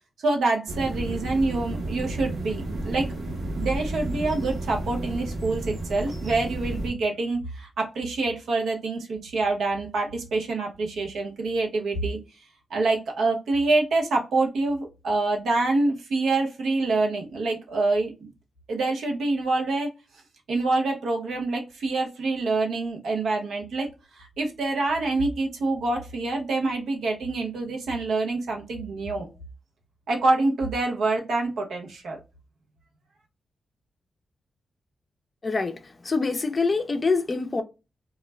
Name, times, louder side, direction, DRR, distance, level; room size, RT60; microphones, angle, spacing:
voice 1, 0.2-3.1 3.6-12.2 12.7-18.3 18.7-19.9 20.5-23.9 24.1-29.3 30.1-32.2, right 3 dB, 90° right, 0.8 m, -26 dB
sound 1, 0.7-6.9, right 1 dB, 70° right, 1.1 m, -32 dB
voice 2, 35.4-35.8 36.0-37.6, left 4 dB, 35° left, 0.4 m, -25 dB
2.3 x 2.0 x 3.2 m
cardioid pair, 85°, 0 cm